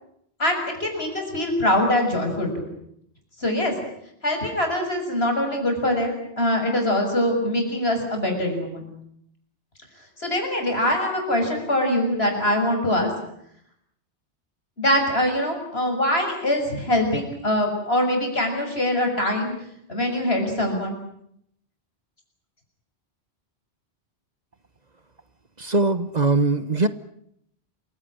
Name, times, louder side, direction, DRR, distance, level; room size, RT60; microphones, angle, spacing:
voice 1, 0.4-2.5 3.4-3.7 4.2-8.8 10.2-13.1 14.8-19.5 19.9-21.0, left 1 dB, 65° left, 4 dB, 7.0 m, -23 dB
voice 2, 25.6-26.9, right 3 dB, 40° right, 13 dB, 1.2 m, -21 dB
28.0 x 17.0 x 10.0 m, 0.72 s
omnidirectional pair, 1.1 m